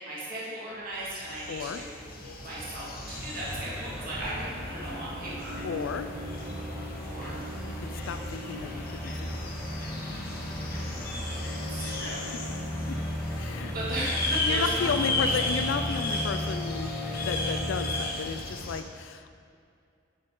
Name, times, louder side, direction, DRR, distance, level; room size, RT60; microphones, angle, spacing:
voice 1, 0.0-2.0 2.2-5.6 7.1-7.4 11.6-12.4 13.7-15.3, right 1 dB, 50° right, -7 dB, 2.1 m, -36 dB
sound 1, 0.8-0.9 1.1-18.6, left 1 dB, 5° left, 1.5 m, -36 dB
sound 2, 1.0-18.8, left 2 dB, 50° left, 1.0 m, -36 dB
voice 2, 1.5-1.8 5.6-6.1 7.8-9.5 12.9-13.0 13.3-13.7 14.4-16.9 17.3-19.4, left 5 dB, 70° left, 9 dB, 0.4 m, -33 dB
9.9 x 6.5 x 3.8 m, 2.4 s
head